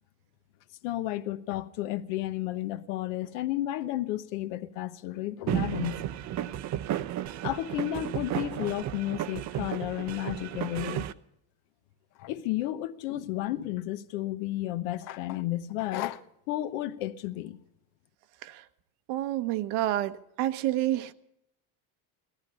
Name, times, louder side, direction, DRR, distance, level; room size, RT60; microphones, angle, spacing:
voice 1, 0.8-6.0 7.4-11.0 12.2-17.6, left 14 dB, 80° left, 1.0 m, -32 dB
sound 1, 5.5-11.1, right 12 dB, 45° right, 0.6 m, -33 dB
voice 2, 19.1-21.1, right 14 dB, 70° right, 1.0 m, -29 dB
17.0 x 14.0 x 5.5 m
cardioid pair, 135°, 41 cm